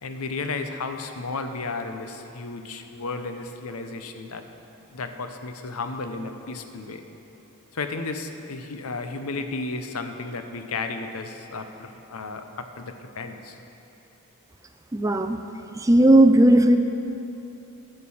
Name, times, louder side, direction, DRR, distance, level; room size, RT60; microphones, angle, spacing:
voice 1, 0.0-4.4 4.9-7.0 7.7-13.6, left 3 dB, 85° left, 7 dB, 0.7 m, -33 dB
voice 2, 14.9-15.4 15.8-16.8, right 1 dB, 15° right, 7 dB, 0.4 m, -16 dB
12.5 x 6.7 x 5.5 m, 3.0 s
head